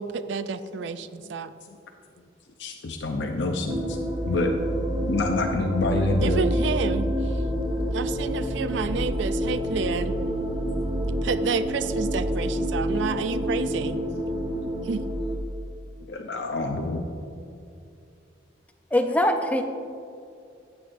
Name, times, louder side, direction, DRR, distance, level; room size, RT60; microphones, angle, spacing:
voice 1, 0.0-1.5 6.2-7.1 7.9-10.2 11.2-14.0 14.8-15.0, right 5 dB, 75° right, 12 dB, 0.4 m, -29 dB
voice 2, 2.6-4.0 4.3-4.6 5.1-6.5 10.6-10.7 11.1-11.3 13.4-13.6 14.3-14.7 16.1-17.0, left 2 dB, 70° left, 2 dB, 0.6 m, -28 dB
sound 1, 3.7-15.4, equal, 20° right, 0.8 m, -28 dB
voice 3, 18.9-19.6, left 1 dB, 10° left, 6 dB, 0.5 m, -22 dB
14.5 x 8.1 x 2.6 m, 2.5 s
head